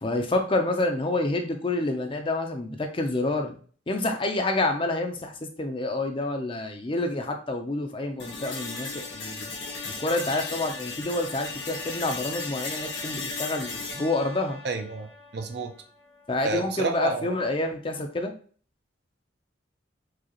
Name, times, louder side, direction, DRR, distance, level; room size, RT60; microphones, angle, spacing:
voice 1, 0.0-3.6 3.9-9.5 9.8-14.6 16.3-18.3, left 2 dB, 30° left, 5 dB, 0.5 m, -28 dB
sound 1, 8.2-16.2, left 3 dB, 85° left, 1.4 m, -36 dB
voice 2, 14.6-15.7 16.4-17.4, right 3 dB, 60° right, 5 dB, 0.6 m, -30 dB
4.7 x 2.4 x 3.0 m, 0.43 s
head